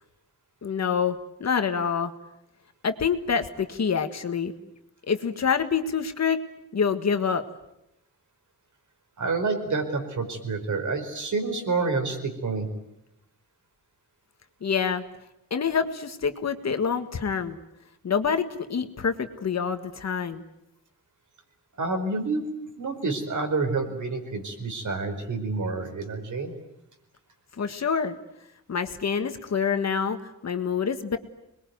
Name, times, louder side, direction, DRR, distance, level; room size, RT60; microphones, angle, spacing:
voice 1, 0.6-2.1 2.8-4.5 5.1-6.4 6.7-7.4 14.6-15.0 15.5-17.6 18.0-20.4 27.6-28.2 28.7-30.2 30.4-31.2, left 6 dB, 50° left, 8 dB, 1.8 m, -26 dB
voice 2, 9.2-12.7 21.8-22.5 22.8-26.5, right 3 dB, 55° right, 5 dB, 4.8 m, -28 dB
26.5 x 21.5 x 9.5 m, 0.85 s
wide cardioid pair, 160°, 35 cm